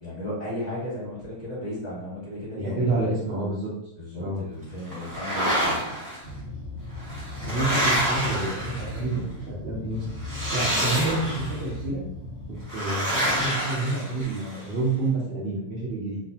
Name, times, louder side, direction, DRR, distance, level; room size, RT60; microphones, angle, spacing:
voice 1, 0.0-3.0 4.0-6.1, left 1 dB, 30° left, -8 dB, 1.1 m, -35 dB
voice 2, 2.6-3.7 4.2-4.4 7.4-10.0 10.5-12.0 12.7-16.2, right 2 dB, 65° right, -6 dB, 0.6 m, -28 dB
sound 1, 4.9-6.2 7.0-9.1 10.2-11.6 12.7-14.6, right 1 dB, 25° right, 0.4 m, -27 dB
sound 2, 6.2-12.6, left 2 dB, 55° left, 0.7 m, -38 dB
2.6 x 2.0 x 2.7 m, 0.78 s
omnidirectional pair, 1.6 m